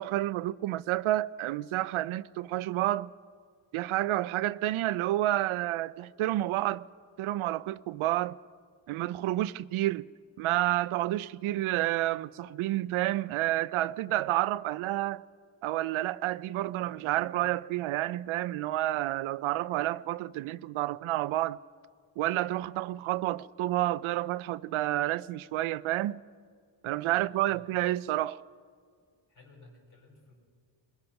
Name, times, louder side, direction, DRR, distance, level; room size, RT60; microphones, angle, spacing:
voice 1, 0.0-3.1 3.7-6.8 7.2-8.4 8.9-10.1 10.4-15.3 15.6-21.6 22.2-26.2 26.8-28.4, right 15 dB, 80° right, 0.5 m, -30 dB
voice 2, 27.1-27.6 29.3-30.3, left 2 dB, 40° left, 5.0 m, -56 dB
22.0 x 21.0 x 5.8 m
cardioid pair, 155°, 48 cm